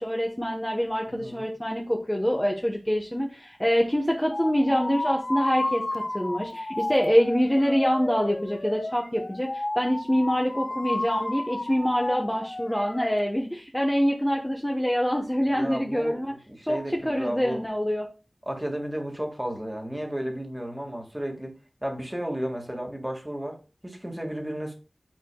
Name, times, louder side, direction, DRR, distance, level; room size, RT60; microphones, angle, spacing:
voice 1, 0.0-16.3 16.7-18.1, equal, 10° left, 1.0 m, -25 dB
voice 2, 1.1-1.5 15.5-17.6 18.5-24.7, equal, 15° right, 1.8 m, -33 dB
sound 1, 4.3-13.2, left 2 dB, 40° left, 0.7 m, -32 dB
9.9 x 4.4 x 2.3 m
wide cardioid pair, 55°, 0 cm